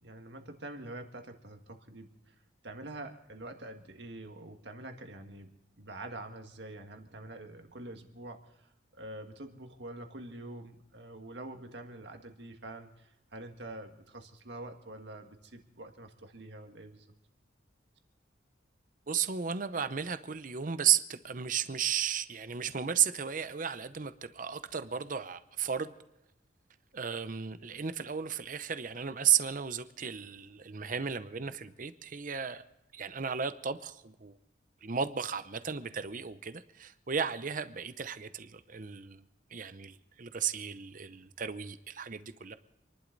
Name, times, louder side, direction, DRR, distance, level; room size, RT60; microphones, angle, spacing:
voice 1, 0.0-2.4 2.6-17.1, right 1 dB, 60° right, 5 dB, 1.8 m, -46 dB
voice 2, 19.1-25.9 26.9-32.6 32.9-34.4 34.8-39.2 39.5-42.5, right 8 dB, 45° right, 12 dB, 0.7 m, -34 dB
28.0 x 11.5 x 4.0 m, 0.92 s
head